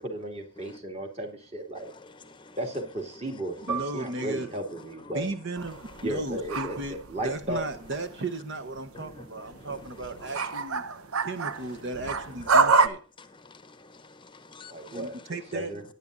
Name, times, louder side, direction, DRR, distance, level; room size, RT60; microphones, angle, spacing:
voice 1, 0.0-1.9 2.6-5.3 6.0-7.6 14.7-15.2 15.5-15.8, right 1 dB, 30° right, 2.3 m, -34 dB
voice 2, 1.8-2.6 3.6-3.7 8.9-9.2 9.5-9.7 13.2-15.0, left 3 dB, 20° left, 0.8 m, -49 dB
Piano, 3.7-8.7 9.1-9.2 10.0-10.4, right 8 dB, 10° right, 1.8 m, -42 dB
voice 3, 3.7-4.5 5.1-5.8 6.0-10.8 11.2-13.0 14.9-15.7, right 2 dB, 55° right, 0.9 m, -35 dB
sound 1, 5.6-8.2 8.5-12.9, right 4 dB, 90° right, 1.0 m, -27 dB
18.0 x 9.6 x 2.6 m
head